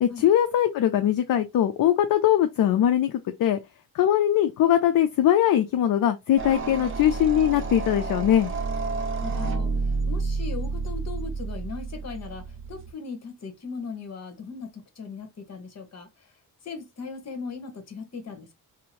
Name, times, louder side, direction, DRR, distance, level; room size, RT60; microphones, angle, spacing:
voice 1, 0.0-3.6 3.9-8.5, left 11 dB, 60° left, 0.5 m, -21 dB
sound 1, 6.4-12.9, right 4 dB, 35° right, 0.6 m, -30 dB
voice 2, 9.2-9.7 10.1-16.1 16.6-18.6, left 5 dB, 40° left, 1.0 m, -38 dB
2.7 x 2.0 x 2.9 m
cardioid pair, 110°, 38 cm